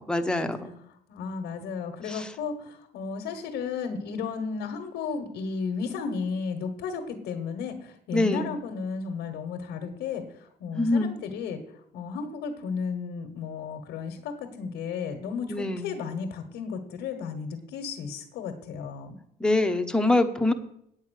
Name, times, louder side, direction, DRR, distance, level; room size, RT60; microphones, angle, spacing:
voice 1, 0.1-0.7 2.1-2.3 8.1-8.5 10.7-11.1 15.5-15.9 19.4-20.5, left 2 dB, 5° left, 6 dB, 1.0 m, -24 dB
voice 2, 0.9-11.6 11.9-19.2, left 5 dB, 80° left, 5 dB, 1.5 m, -34 dB
8.7 x 8.5 x 6.5 m, 0.73 s
cardioid pair, 110°, 17 cm